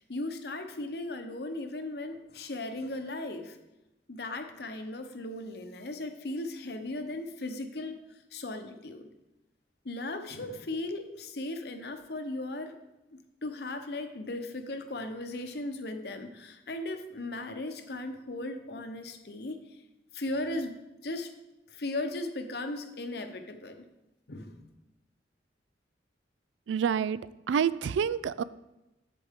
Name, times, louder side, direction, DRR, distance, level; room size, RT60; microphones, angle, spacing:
voice 1, 0.1-3.6 4.1-8.0 8.3-9.1 9.8-12.8 13.4-19.8 20.1-21.3 21.7-23.8 24.3-24.6, left 2 dB, 60° left, 7 dB, 0.8 m, -37 dB
voice 2, 26.7-27.2 27.5-28.4, right 7 dB, 90° right, 17 dB, 0.3 m, -27 dB
8.2 x 7.8 x 3.6 m, 1.0 s
head